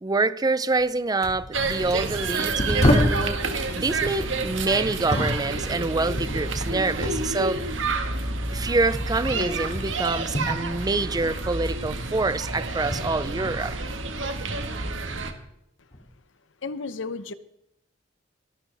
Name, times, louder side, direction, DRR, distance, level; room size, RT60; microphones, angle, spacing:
voice 1, 0.0-7.6 8.5-13.8, right 3 dB, 20° right, 0.5 m, -26 dB
sound 1, 0.8-0.9 1.2-3.3 3.9-7.3 7.5-11.4 11.6-14.0 14.4-15.1 15.9-16.1, left 1 dB, 35° left, 2.3 m, -29 dB
sound 2, 1.5-15.3, right 3 dB, 80° right, 1.6 m, -29 dB
voice 2, 16.6-17.3, left 4 dB, 75° left, 0.8 m, -32 dB
22.5 x 12.5 x 3.4 m
head